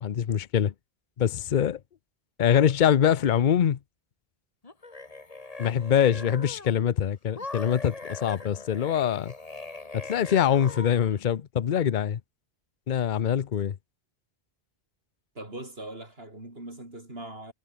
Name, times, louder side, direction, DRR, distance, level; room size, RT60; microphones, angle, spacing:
voice 1, 0.0-0.7 1.2-1.8 2.4-3.8 5.6-9.3 9.9-12.2 12.9-13.7, left 9 dB, 50° left, 0.8 m, -24 dB
sound 1, 4.6-6.9 7.4-11.2, left 3 dB, 35° left, 2.0 m, -41 dB
voice 2, 15.3-17.5, right 1 dB, 70° right, 6.4 m, -41 dB
omnidirectional pair, 1.1 m